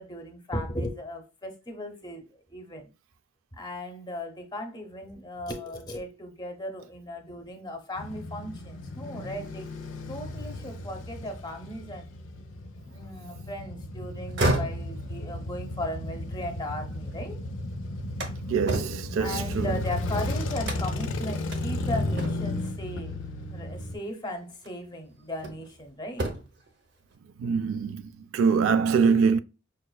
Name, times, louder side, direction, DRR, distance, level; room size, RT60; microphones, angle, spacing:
voice 1, 0.0-2.9 3.5-9.7 10.1-12.1 12.8-17.4 19.2-23.2 23.5-26.3, left 1 dB, 20° left, 0.6 m, -37 dB
Male speech man speaking / Motorcycle / Idling, 8.0-24.0, left 2 dB, 70° left, 0.5 m, -34 dB
sound 1, 14.2-17.3 17.7-20.1 20.6-21.1 21.5-21.6 22.2-22.7 23.9-24.1 24.6-25.8 26.1-26.7, right 1 dB, 60° right, 0.7 m, -33 dB
voice 2, 18.5-19.8 27.4-28.0 28.3-29.4, right 6 dB, 85° right, 0.3 m, -24 dB
5.2 x 2.3 x 2.3 m
head